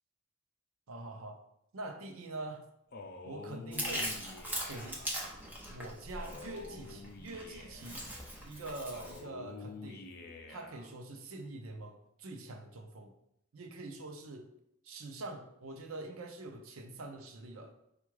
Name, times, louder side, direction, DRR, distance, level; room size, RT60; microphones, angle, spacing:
voice 1, 0.9-1.4 1.7-2.7 3.2-4.1 4.7-5.0 5.7-8.1 8.4-10.0 10.5-13.1 13.5-14.5 14.8-17.7, right 2 dB, 90° right, 5 dB, 0.6 m, -44 dB
Male speech man speaking, 2.9-5.1 6.2-8.0 8.9-10.9, left 3 dB, 45° left, 0.4 m, -48 dB
Chewing mastication, 3.7-9.2, equal, 10° right, 0.7 m, -41 dB
4.5 x 2.4 x 4.6 m, 0.79 s
head